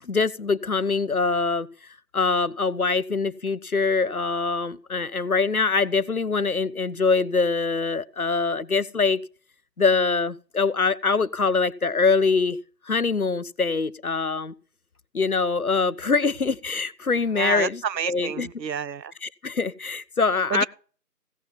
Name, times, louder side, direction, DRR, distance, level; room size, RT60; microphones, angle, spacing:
voice 1, 0.0-1.7 2.1-9.2 9.8-12.6 12.9-14.5 15.1-17.8 18.1-18.5 19.2-20.7, left 4 dB, 60° left, 0.6 m, -23 dB
voice 2, 17.4-19.1 20.5-20.7, right 8 dB, 85° right, 0.6 m, -29 dB
15.5 x 7.2 x 5.5 m
figure-of-eight pair, 175°, 50 cm